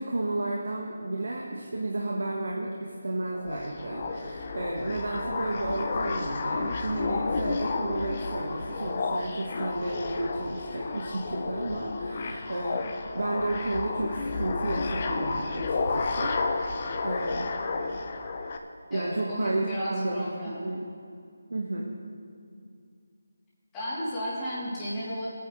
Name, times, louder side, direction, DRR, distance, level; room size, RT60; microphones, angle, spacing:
voice 1, 0.0-17.5 18.9-20.3 20.6-20.8 21.5-21.9, right 2 dB, 85° right, -1 dB, 1.3 m, -32 dB
sound 1, 3.3-18.6, left 4 dB, 35° left, 0.7 m, -31 dB
voice 2, 18.9-20.6 23.7-25.3, equal, 10° left, -10 dB, 2.9 m, -34 dB
19.0 x 9.4 x 3.1 m, 2.4 s
figure-of-eight pair, 170°, 0 cm